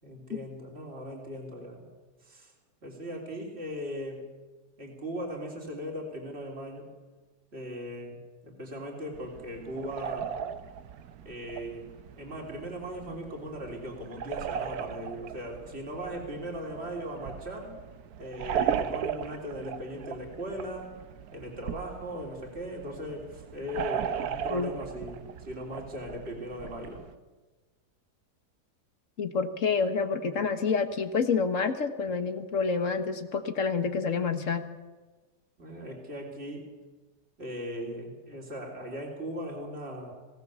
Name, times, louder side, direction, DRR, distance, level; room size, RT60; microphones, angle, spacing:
voice 1, 0.0-1.8 2.2-2.5 2.8-4.2 4.8-6.9 7.5-10.3 11.2-17.7 18.2-20.9 21.3-27.0 35.6-36.7 37.4-40.1, equal, 40° right, -1 dB, 3.8 m, -38 dB
sound 1, 9.1-27.2, right 8 dB, 70° right, 1.3 m, -37 dB
voice 2, 29.2-34.7, left 5 dB, 50° left, 8 dB, 1.7 m, -28 dB
22.5 x 17.5 x 7.0 m, 1.3 s
omnidirectional pair, 1.7 m